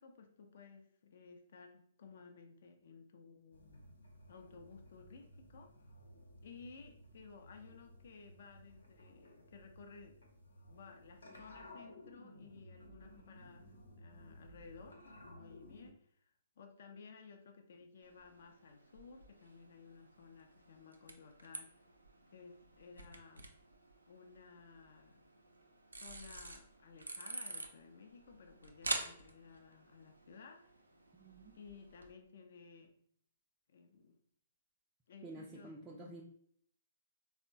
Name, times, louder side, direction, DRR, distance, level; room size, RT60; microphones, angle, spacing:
voice 1, 0.0-3.9 4.3-5.7 6.4-10.2 10.7-21.8 22.3-23.5 24.1-25.2 25.9-30.8 31.5-32.9 33.7-34.1 35.1-36.2, left 5 dB, 60° left, 4 dB, 0.4 m, -57 dB
sound 1, 3.5-15.9, left 1 dB, 80° left, 0.8 m, -57 dB
sound 2, 18.0-32.1, right 2 dB, 85° right, 0.4 m, -48 dB
voice 2, 31.2-31.6 35.2-36.2, right 2 dB, 20° right, -3 dB, 0.4 m, -50 dB
3.5 x 2.0 x 2.6 m, 0.64 s
figure-of-eight pair, 120°, 0 cm